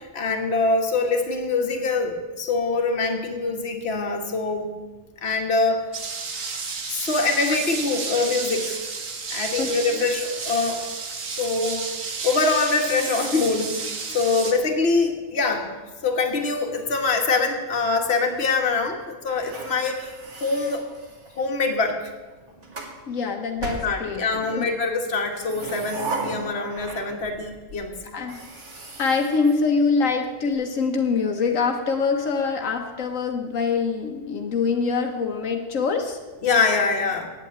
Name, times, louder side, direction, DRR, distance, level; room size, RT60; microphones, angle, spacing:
voice 1, 0.0-4.8 5.2-5.8 6.9-8.8 9.3-10.8 11.3-11.9 12.2-13.9 14.1-15.7 16.0-20.1 20.4-20.8 21.4-22.1 23.8-27.9 36.4-37.3, left 3 dB, 55° left, 3 dB, 1.6 m, -24 dB
sound 1, 5.9-14.5, right 4 dB, 85° right, 1.7 m, -31 dB
voice 2, 9.6-10.0 14.5-14.6 23.1-24.2 24.5-24.6 28.1-28.4 29.0-36.2, left 4 dB, 85° left, 3 dB, 1.4 m, -24 dB
sound 2, 19.3-21.6 22.3-23.0 23.6-24.5 25.2-27.4 27.7-27.8 28.2-30.3, right 3 dB, 65° right, 2.1 m, -36 dB
9.1 x 8.4 x 8.7 m, 1.3 s
omnidirectional pair, 1.3 m